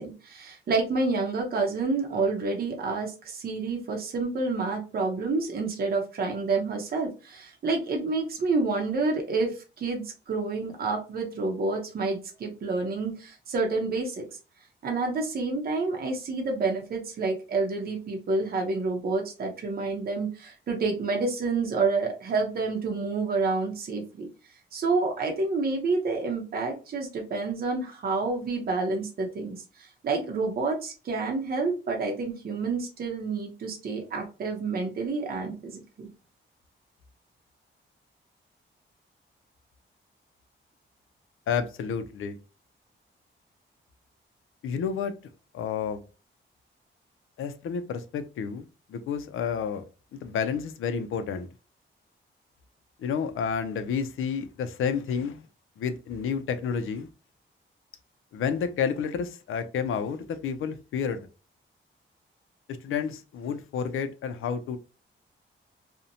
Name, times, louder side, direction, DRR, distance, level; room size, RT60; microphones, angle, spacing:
voice 1, 0.0-14.3 14.8-24.3 24.7-36.1, right 3 dB, 50° right, 0.6 m, -29 dB
voice 2, 41.5-42.4 44.6-45.1 45.5-46.0 47.4-49.8 50.1-51.5 53.0-55.5 55.8-57.1 58.3-61.2 62.8-64.8, left 6 dB, 80° left, 0.4 m, -30 dB
2.6 x 2.1 x 2.7 m
wide cardioid pair, 160°, 21 cm